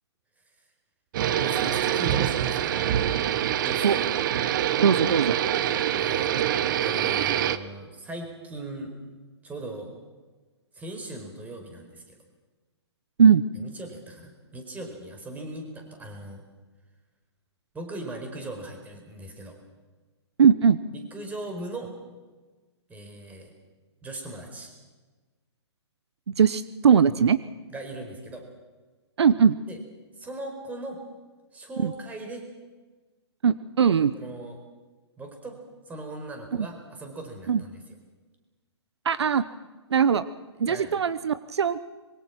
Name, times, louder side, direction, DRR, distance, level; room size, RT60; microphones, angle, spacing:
sound 1, 1.1-7.6, right 10 dB, 45° right, 1.2 m, -25 dB
voice 1, 1.3-3.0 3.6-4.0 5.9-6.3 6.8-8.9 9.4-9.9 10.7-12.2 13.6-16.4 17.7-19.6 20.9-21.9 22.9-23.5 24.0-24.7 27.7-28.4 29.7-29.8 30.1-31.0 31.5-32.5 34.1-34.6 35.2-35.6 35.9-37.8 40.7-40.9, right 2 dB, 10° right, 4 dB, 4.9 m, -39 dB
voice 2, 4.8-5.4 13.2-13.4 20.4-20.8 26.4-27.4 29.2-29.6 31.8-31.9 33.4-34.1 37.5-37.6 39.0-39.4 39.9-40.2 40.6-41.8, right 7 dB, 70° right, 15 dB, 1.0 m, -20 dB
25.5 x 23.0 x 6.1 m, 1.3 s
hypercardioid pair, 135°, 15 cm